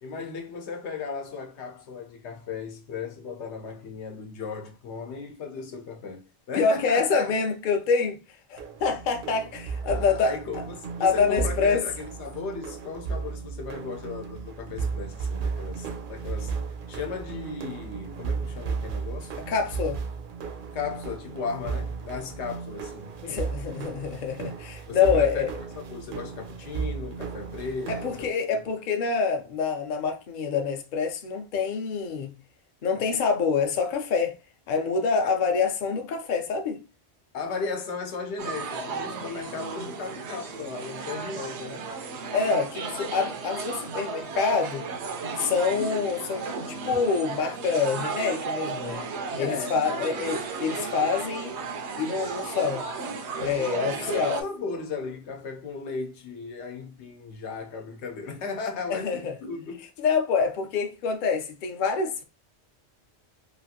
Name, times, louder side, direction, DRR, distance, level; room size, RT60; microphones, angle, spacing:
voice 1, 0.0-7.3 9.8-16.5 16.9-19.4 20.7-23.2 24.9-28.3 35.2-35.4 37.3-41.8 49.4-50.3 53.9-59.9, left 4 dB, 85° left, 1.0 m, -36 dB
voice 2, 6.6-8.2 8.5-10.4 11.0-11.8 19.5-20.0 23.2-25.5 27.9-32.3 32.8-34.4 34.7-36.8 42.3-44.9 45.4-49.0 49.4-51.5 51.9-52.8 53.4-54.4 58.9-59.4 60.0-62.2, left 5 dB, 55° left, 0.6 m, -26 dB
sound 1, 8.6-28.3, right 5 dB, 60° right, 0.6 m, -35 dB
sound 2, 38.4-54.4, right 4 dB, 90° right, 0.9 m, -34 dB
3.1 x 2.4 x 2.7 m
omnidirectional pair, 1.1 m